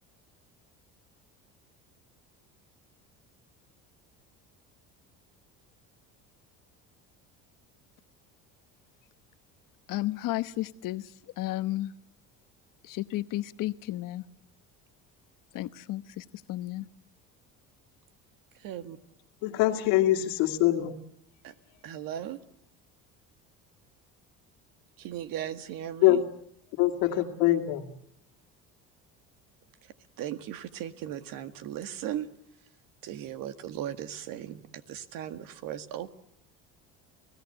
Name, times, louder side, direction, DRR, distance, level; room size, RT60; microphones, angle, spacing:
voice 1, 9.9-11.0 11.4-11.9 12.8-14.2 15.5-16.8, left 16 dB, 65° left, 14 dB, 1.1 m, -33 dB
voice 2, 18.5-19.0 21.4-21.5 21.8-22.4 25.0-26.2 29.8-32.3 33.0-36.1, right 11 dB, 70° right, 10 dB, 1.9 m, -37 dB
voice 3, 19.4-21.0 26.0-26.2 26.8-27.9, left 14 dB, 85° left, 5 dB, 2.5 m, -23 dB
29.0 x 17.5 x 8.0 m, 0.70 s
supercardioid pair, 100°, 35 cm